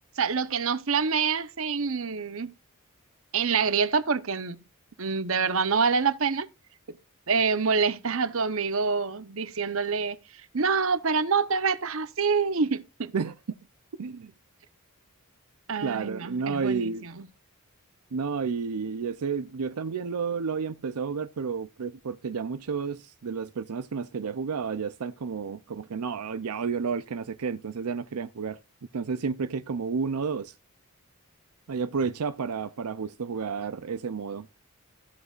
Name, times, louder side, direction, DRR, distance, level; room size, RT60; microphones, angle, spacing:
voice 1, 0.2-2.5 3.3-4.6 5.0-6.5 7.3-13.1 15.7-17.3, right 5 dB, 65° right, 0.9 m, -26 dB
voice 2, 14.0-14.3 15.8-17.1 18.1-28.6 28.9-30.5 31.7-34.5, right 5 dB, 90° right, 0.5 m, -31 dB
15.0 x 8.1 x 2.5 m
head